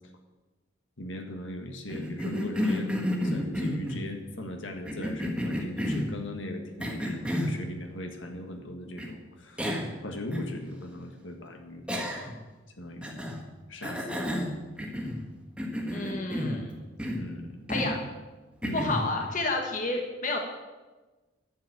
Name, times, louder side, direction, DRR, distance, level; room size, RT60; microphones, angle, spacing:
voice 1, 1.0-2.9 3.2-12.1 12.8-13.3 13.7-14.4 17.2-17.7 18.6-18.9, left 1 dB, 70° left, 4 dB, 1.7 m, -39 dB
Cough, 1.9-4.1 4.8-6.1 6.8-7.6 9.0-9.1 9.6-10.0 10.3-10.4 11.9-12.4 13.0-13.4 13.8-15.3 15.6-16.6 17.0-17.3 17.7-18.0 18.6-19.1, equal, 5° right, 1.5 m, -31 dB
voice 2, 15.9-16.7 17.7-18.0 18.7-20.4, left 2 dB, 40° left, 2 dB, 1.3 m, -30 dB
11.0 x 7.3 x 8.9 m, 1.2 s
head